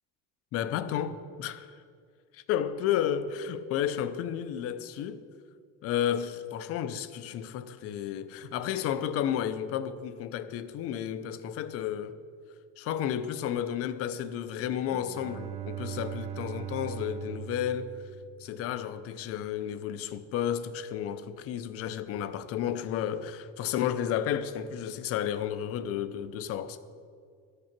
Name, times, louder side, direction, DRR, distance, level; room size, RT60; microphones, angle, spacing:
voice 1, 0.5-1.8 2.3-5.2 5.8-12.2 12.8-18.0 18.4-26.8, left 10 dB, 50° left, 0.5 m, -32 dB
Bowed string instrument, 14.7-18.8, right 9 dB, 20° right, 0.4 m, -40 dB
12.0 x 6.6 x 5.9 m
cardioid pair, 170°, 31 cm